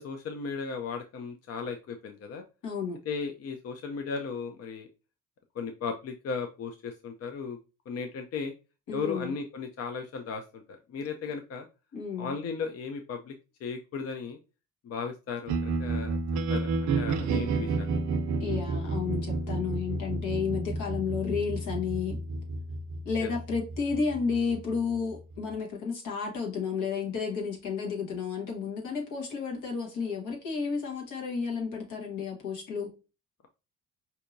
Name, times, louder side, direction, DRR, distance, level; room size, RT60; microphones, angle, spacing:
voice 1, 0.0-2.4 3.1-4.9 5.6-7.6 7.9-8.5 8.9-10.6 10.9-11.7 12.2-13.3 13.6-14.4 14.8-16.1 16.5-17.9 23.2-23.3, left 5 dB, 55° left, 0.5 m, -36 dB
voice 2, 2.6-3.0 8.9-9.3 11.9-12.3 18.4-22.2 23.0-32.9, left 5 dB, 80° left, 1.4 m, -32 dB
sound 1, 15.5-25.6, right 3 dB, 75° right, 0.5 m, -31 dB
4.5 x 2.7 x 2.5 m
cardioid pair, 90°, 30 cm